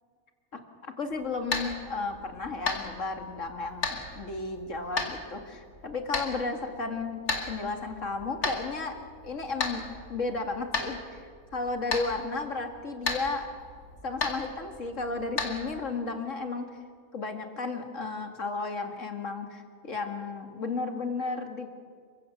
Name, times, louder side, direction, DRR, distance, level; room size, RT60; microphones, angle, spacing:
voice 1, 0.5-7.2 7.5-9.0 9.2-9.8 10.1-13.5 14.0-16.6 17.1-21.7, left 3 dB, 55° left, 5 dB, 2.5 m, -33 dB
sound 1, 1.1-15.7, left 3 dB, 75° left, 2.9 m, -36 dB
29.0 x 16.0 x 7.9 m, 2.1 s
omnidirectional pair, 1.6 m